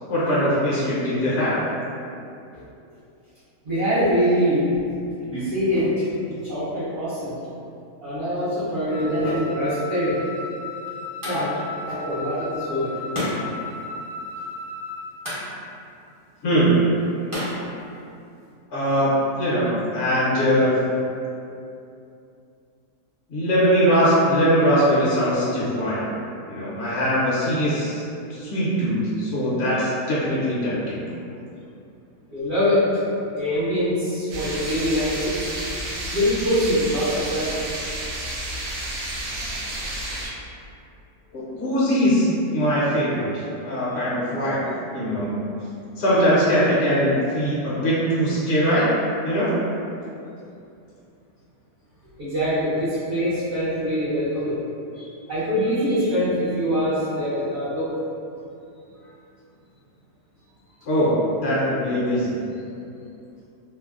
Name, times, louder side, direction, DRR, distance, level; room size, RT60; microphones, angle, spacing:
voice 1, 0.1-1.6 16.4-16.7 18.7-19.1 19.4-20.7 23.3-26.0 26.5-28.0 28.3-31.0 41.3-44.6 44.9-45.4 46.0-48.9 49.2-49.5 60.9-62.4, equal, 55° left, -9 dB, 0.8 m, -21 dB
voice 2, 3.6-4.7 5.2-6.1 6.4-7.4 8.0-10.1 11.2-11.5 11.8-13.0 32.3-32.9 33.3-35.4 36.1-37.7 40.2-40.3 52.2-54.6 54.9-57.9, equal, 60° right, -18 dB, 1.6 m, -24 dB
Wind instrument woodwind instrument, 8.9-15.1, left 3 dB, 45° right, 1.1 m, -35 dB
sound 1, 10.0-18.5, equal, 20° right, 0.6 m, -36 dB
sound 2, 34.3-40.3, right 1 dB, 90° right, 1.2 m, -31 dB
3.3 x 2.0 x 2.4 m, 2.6 s
omnidirectional pair, 1.6 m